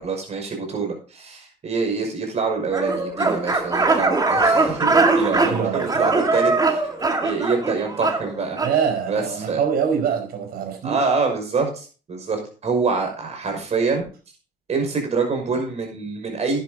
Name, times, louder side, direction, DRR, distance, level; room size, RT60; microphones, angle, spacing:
voice 1, 0.0-6.8 7.2-8.6 9.1-9.6 10.8-14.0 14.7-16.6, right 4 dB, 40° right, 3 dB, 5.8 m, -25 dB
sound 1, 2.7-8.8, right 3 dB, 20° right, 2.0 m, -21 dB
voice 2, 5.2-5.9 8.5-11.0, right 7 dB, 60° right, 4 dB, 4.7 m, -24 dB
11.0 x 10.5 x 4.0 m, 0.37 s
cardioid pair, 110°, 17 cm